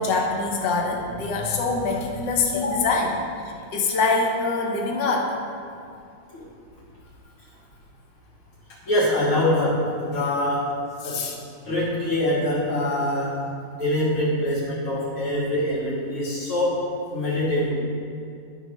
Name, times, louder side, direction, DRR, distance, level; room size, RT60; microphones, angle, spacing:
voice 1, 0.0-3.2 3.7-5.3 11.0-11.4, left 3 dB, 60° left, 0 dB, 1.6 m, -24 dB
voice 2, 8.9-10.7 11.0-11.2 11.6-13.4 13.8-16.8 17.1-17.7, left 1 dB, 85° left, -11 dB, 3.3 m, -24 dB
13.0 x 5.4 x 3.1 m, 2.4 s
omnidirectional pair, 2.3 m